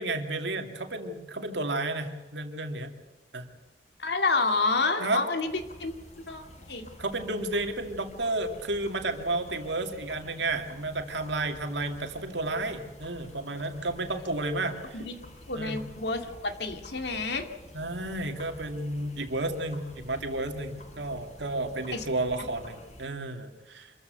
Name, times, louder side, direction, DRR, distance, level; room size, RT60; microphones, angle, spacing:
voice 1, 0.0-2.9 3.3-3.4 5.0-5.2 7.0-15.0 15.5-15.8 17.7-23.9, right 2 dB, 80° right, 5 dB, 2.5 m, -32 dB
voice 2, 4.0-5.9 6.3-6.4 6.7-6.9 14.9-15.2 15.5-17.5 21.9-22.1, left 3 dB, 70° left, 6 dB, 2.3 m, -29 dB
sound 1, 5.5-23.1, left 1 dB, 40° left, 5.5 m, -50 dB
26.0 x 14.5 x 8.0 m, 1.2 s
head